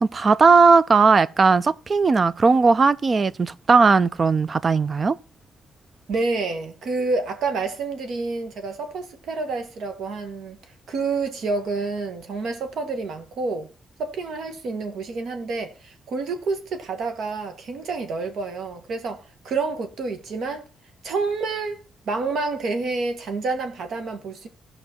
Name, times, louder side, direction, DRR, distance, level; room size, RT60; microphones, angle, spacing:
voice 1, 0.0-5.2, right 4 dB, 35° right, 0.4 m, -17 dB
voice 2, 6.1-10.6 10.9-13.7 14.0-20.7 21.0-24.5, right 3 dB, 70° right, 1.5 m, -28 dB
15.5 x 5.4 x 4.3 m
cardioid pair, 120°, 0 cm